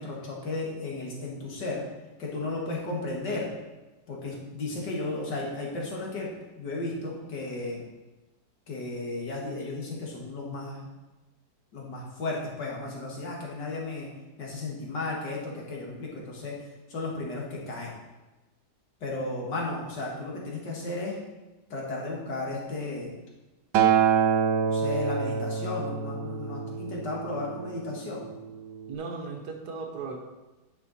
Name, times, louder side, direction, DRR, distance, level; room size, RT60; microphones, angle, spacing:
voice 1, 0.0-1.8 2.2-3.5 4.1-6.3 6.6-7.8 8.7-10.9 11.7-14.1 14.4-16.5 16.9-17.9 19.0-21.2 21.7-23.2 24.6-28.3, left 2 dB, 75° left, -3 dB, 2.5 m, -34 dB
Acoustic guitar, 23.7-28.0 28.9-29.0, right 7 dB, 85° right, 1.3 m, -26 dB
voice 2, 28.9-30.2, right 4 dB, 70° right, 2 dB, 1.6 m, -36 dB
9.6 x 5.9 x 4.2 m, 1.1 s
omnidirectional pair, 1.9 m